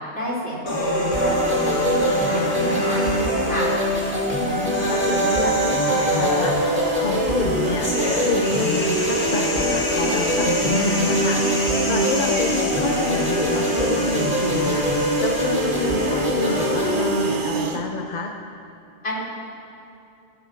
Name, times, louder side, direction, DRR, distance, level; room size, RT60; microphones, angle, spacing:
voice 1, 0.1-3.7 19.0-19.2, equal, 65° left, -7 dB, 3.8 m, -30 dB
sound 1, 0.7-16.7, equal, 90° left, 2.4 m, -26 dB
sound 2, 1.1-17.3, equal, 10° right, 2.2 m, -24 dB
sound 3, 3.9-17.8, right 6 dB, 55° right, 0.9 m, -31 dB
voice 2, 4.4-18.3, left 4 dB, 45° left, 3 dB, 0.8 m, -28 dB
17.0 x 5.9 x 7.3 m, 2.6 s
omnidirectional pair, 1.1 m